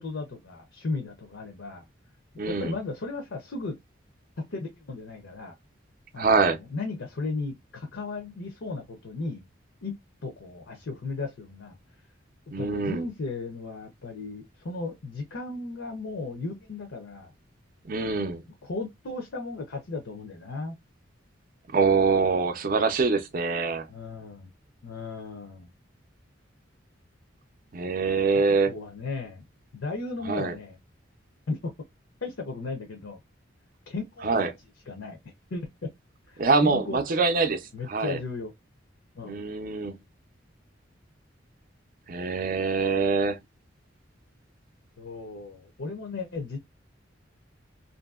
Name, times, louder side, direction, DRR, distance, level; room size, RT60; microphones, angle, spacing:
voice 1, 0.0-1.8 2.5-3.8 4.4-5.5 6.1-9.4 9.8-10.0 10.2-11.8 12.6-17.3 18.6-20.8 23.9-24.5 24.8-25.7 28.2-29.5 29.7-30.8 31.5-31.7 32.2-33.2 33.9-34.5 34.9-35.2 35.5-35.9 36.3-37.2 37.7-38.5 39.1-39.4 45.0-46.6, left 3 dB, 80° left, 0.6 m, -35 dB
voice 2, 2.4-2.7 6.2-6.6 12.5-13.0 17.9-18.4 21.7-23.8 27.7-28.7 30.3-30.6 34.2-34.5 36.4-37.6 37.9-38.2 39.2-40.0 42.1-43.4, right 4 dB, 45° right, 0.4 m, -24 dB
2.7 x 2.6 x 2.3 m
head